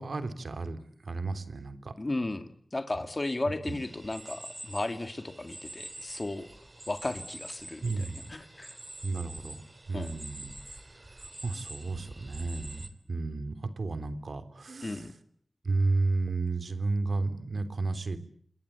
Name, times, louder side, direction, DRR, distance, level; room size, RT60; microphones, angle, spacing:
voice 1, 0.0-1.9 3.5-3.8 7.8-8.3 9.0-9.6 9.9-10.8 11.1-15.1 15.6-18.2, right 3 dB, 65° right, 9 dB, 3.3 m, -33 dB
voice 2, 2.0-6.5 6.9-8.8 9.9-10.2 14.8-15.1, left 2 dB, 35° left, 8 dB, 2.3 m, -35 dB
sound 1, 3.6-12.9, right 2 dB, 30° right, 3.1 m, -46 dB
29.5 x 21.5 x 8.4 m, 0.64 s
wide cardioid pair, 85°, 0 cm